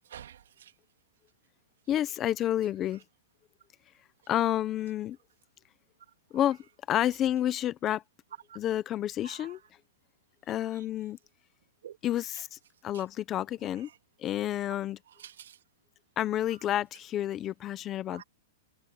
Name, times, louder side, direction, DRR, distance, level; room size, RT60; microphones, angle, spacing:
voice 1, 0.1-0.7 8.5-8.6 9.2-9.6 10.7-10.8 11.8-12.0 12.9-13.0 15.1-15.6 18.1-18.2, right 9 dB, 75° right, 3.1 m, -48 dB
voice 2, 1.9-3.0 4.3-5.2 6.3-6.6 6.9-8.0 8.6-9.6 10.5-11.2 12.0-13.9 14.2-15.0 16.2-18.2, left 12 dB, 20° left, 0.8 m, -30 dB
supercardioid pair, 175°, 0 cm